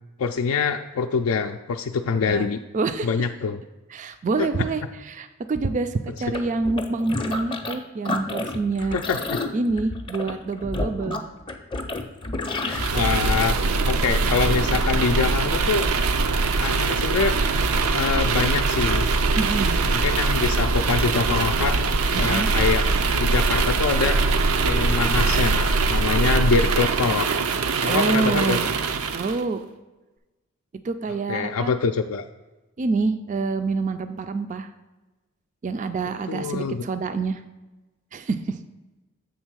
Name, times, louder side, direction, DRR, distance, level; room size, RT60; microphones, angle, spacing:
voice 1, 0.2-2.6 3.0-3.6 4.4-4.5 8.9-9.4 12.6-13.5 13.9-15.9 16.4-17.3 17.9-19.1 19.9-21.8 22.1-22.8 23.1-24.2 24.6-27.3 27.8-28.6 31.3-32.2 36.3-36.8, left 5 dB, 80° left, 4 dB, 0.4 m, -24 dB
voice 2, 2.1-2.5 2.7-3.1 3.9-9.0 9.5-11.2 19.4-19.8 22.1-22.5 27.9-28.6 29.1-29.6 30.8-31.7 32.8-34.7 35.6-37.4 38.1-38.6, right 3 dB, 35° right, 10 dB, 0.3 m, -26 dB
sound 1, 6.2-7.8 8.0-12.9, left 2 dB, 25° left, 0.5 m, -30 dB
sound 2, 12.7-29.4, right 3 dB, 85° right, 0.5 m, -22 dB
7.3 x 3.6 x 6.2 m, 1.1 s
head